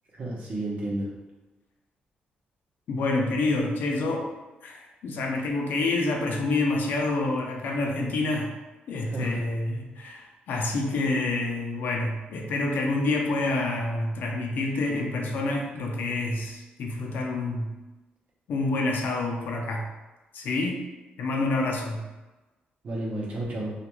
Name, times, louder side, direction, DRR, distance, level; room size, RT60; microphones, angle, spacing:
voice 1, 0.1-1.1 9.0-9.4 22.8-23.7, right 1 dB, 45° right, -4 dB, 0.7 m, -31 dB
voice 2, 2.9-4.3 4.6-8.5 8.9-17.7 18.5-19.9 20.3-20.8 21.2-22.1, left 2 dB, 70° left, 1 dB, 0.4 m, -27 dB
2.4 x 2.2 x 2.9 m, 1.1 s
cardioid pair, 150°, 3 cm